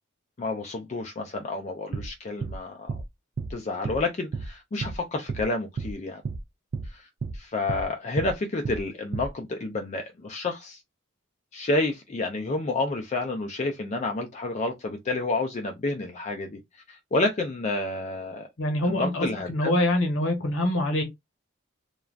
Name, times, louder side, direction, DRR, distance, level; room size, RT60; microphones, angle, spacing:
voice 1, 0.4-3.0 3.5-6.2 6.8-10.8 11.5-18.5 18.8-19.8, left 2 dB, 35° left, 0.4 m, -30 dB
sound 1, 1.9-2.1 2.4-2.6 2.9-3.0 3.4-3.5 3.8-4.0 4.3-4.5 4.8-5.0 5.3-5.4 5.8-5.9 6.2-6.4 6.7-6.9 7.2-7.4 7.7-7.8 8.2-8.3 8.6-8.8 9.1-9.3, right 4 dB, 50° right, 0.3 m, -32 dB
voice 2, 18.6-21.0, left 1 dB, 75° left, 0.9 m, -25 dB
3.2 x 2.3 x 2.3 m
head